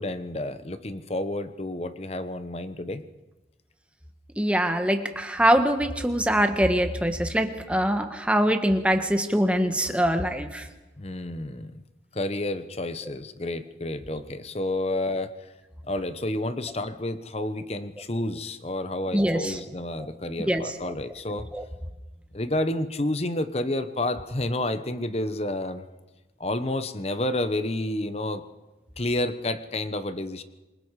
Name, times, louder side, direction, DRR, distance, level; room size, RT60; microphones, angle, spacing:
voice 1, 0.0-3.0 11.0-11.8 12.1-15.3 15.9-21.5 22.3-25.8 26.4-28.4 29.0-30.4, left 1 dB, 35° left, 11 dB, 1.0 m, -30 dB
voice 2, 4.4-10.7 14.1-14.2 19.1-19.6 20.0-20.1 20.5-20.7 21.5-21.6, equal, 5° right, 6 dB, 1.4 m, -23 dB
27.5 x 21.0 x 4.9 m, 1.1 s
head